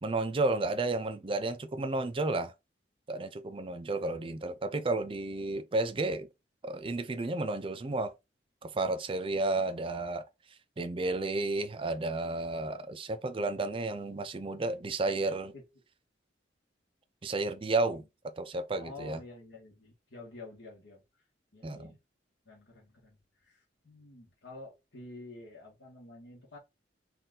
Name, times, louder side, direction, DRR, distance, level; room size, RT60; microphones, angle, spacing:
voice 1, 0.0-2.5 3.1-6.3 6.6-8.1 8.6-10.3 10.8-15.5 17.2-18.0 18.4-19.2 21.6-21.9, right 2 dB, 30° right, 0.5 m, -32 dB
voice 2, 18.7-21.0 21.5-22.0 22.4-26.6, left 2 dB, 75° left, 1.5 m, -49 dB
4.2 x 2.5 x 3.8 m
head